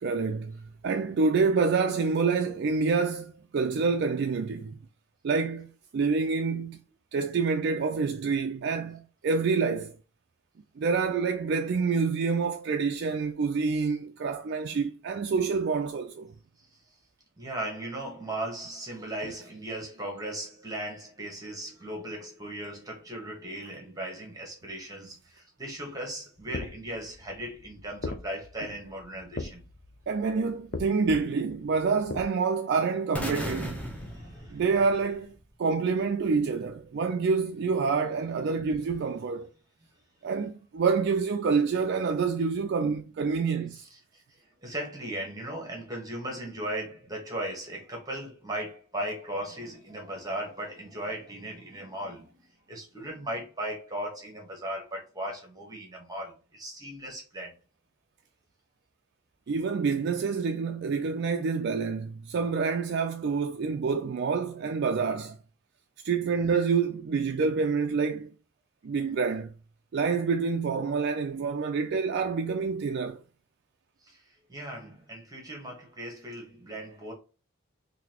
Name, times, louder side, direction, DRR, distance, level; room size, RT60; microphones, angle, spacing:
voice 1, 0.0-4.7 5.2-6.8 7.1-10.0 10.8-16.3 30.1-33.9 34.5-35.3 35.6-39.5 40.2-43.8 59.5-65.4 66.0-68.3 68.8-69.5 69.9-73.2, right 5 dB, 55° right, 0.3 m, -27 dB
voice 2, 17.4-29.6 33.9-34.6 44.1-57.5 74.0-77.1, right 1 dB, 20° right, 1.1 m, -37 dB
sound 1, 26.4-32.3, left 3 dB, 40° left, 0.4 m, -40 dB
sound 2, 33.1-35.2, equal, 5° left, 0.8 m, -36 dB
3.9 x 2.8 x 2.9 m
head